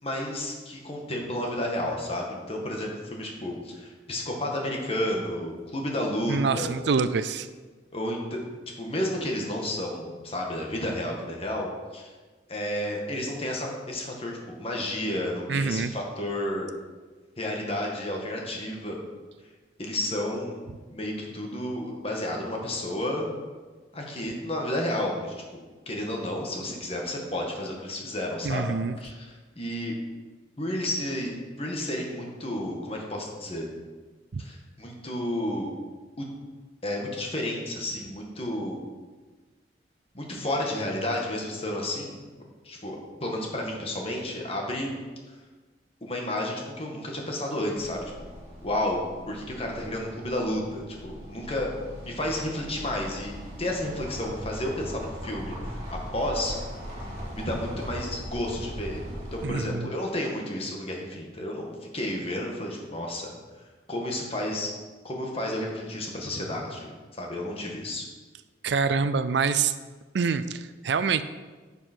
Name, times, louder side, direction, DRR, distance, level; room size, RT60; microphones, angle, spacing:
voice 1, 0.0-6.8 7.9-8.5 8.8-12.1 12.5-16.7 17.4-19.0 19.8-20.6 20.9-23.2 23.9-28.7 29.0-29.9 30.6-33.7 34.4-35.7 36.2-36.3 36.8-38.8 40.1-42.2 42.6-44.9 46.0-48.3 48.6-49.0 49.3-51.7 52.0-56.6 57.3-63.3 63.9-64.7 65.0-68.0, left 1 dB, 30° left, 0 dB, 1.6 m, -31 dB
voice 2, 6.3-7.5 15.5-15.9 28.4-29.0 34.3-34.4 59.4-59.9 68.6-69.7 70.1-71.2, right 5 dB, 65° right, 13 dB, 0.4 m, -26 dB
sound 1, 47.8-59.5, equal, 35° right, 3.1 m, -39 dB
10.5 x 7.0 x 4.5 m, 1.3 s
head